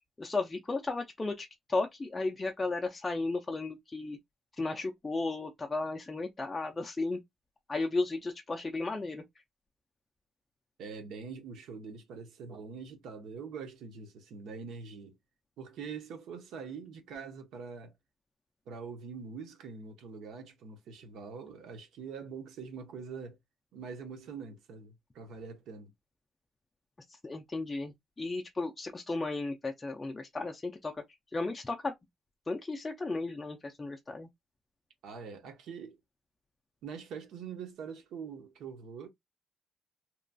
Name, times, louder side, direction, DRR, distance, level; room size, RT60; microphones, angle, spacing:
voice 1, 0.2-4.2 4.5-7.2 7.7-9.2 27.1-31.0 31.3-31.9 32.5-34.3, left 3 dB, 15° left, 0.3 m, -34 dB
voice 2, 10.8-15.2 15.6-17.9 18.7-23.4 23.7-25.9 35.0-36.0 36.8-39.1, right 5 dB, 75° right, 0.8 m, -44 dB
2.9 x 2.2 x 2.5 m
cardioid pair, 170°, 0 cm